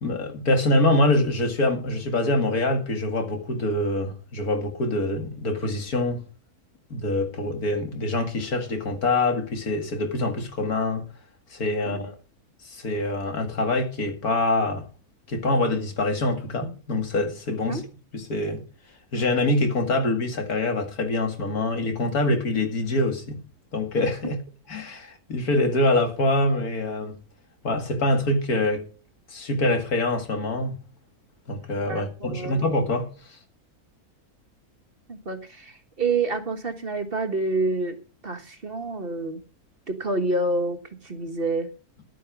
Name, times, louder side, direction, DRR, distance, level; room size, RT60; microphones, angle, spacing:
voice 1, 0.0-6.2 6.9-11.0 11.5-12.1 12.6-14.9 15.3-17.9 18.1-18.6 19.1-23.4 23.7-24.4 24.7-27.2 27.6-28.9 29.3-30.7 31.5-33.4, left 2 dB, 75° left, 2.6 m, -25 dB
voice 2, 31.9-32.7 35.1-38.0 38.2-39.4 39.9-41.7, right 2 dB, 40° right, 1.5 m, -28 dB
11.5 x 9.3 x 6.1 m
omnidirectional pair, 1.6 m